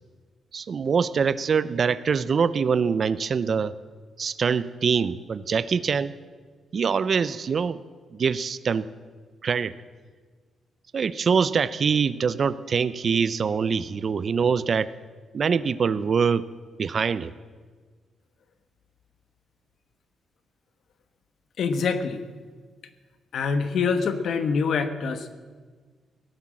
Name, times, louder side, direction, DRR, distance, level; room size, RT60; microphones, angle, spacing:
voice 1, 0.5-3.7 4.2-6.1 6.7-7.8 8.1-8.9 9.4-9.7 10.9-14.9 15.3-16.4 16.8-17.3, right 6 dB, 45° right, 17 dB, 0.6 m, -24 dB
voice 2, 21.6-22.2 23.3-25.3, left 5 dB, 65° left, 10 dB, 1.2 m, -25 dB
17.5 x 11.0 x 7.5 m, 1.5 s
cardioid pair, 125°, 0 cm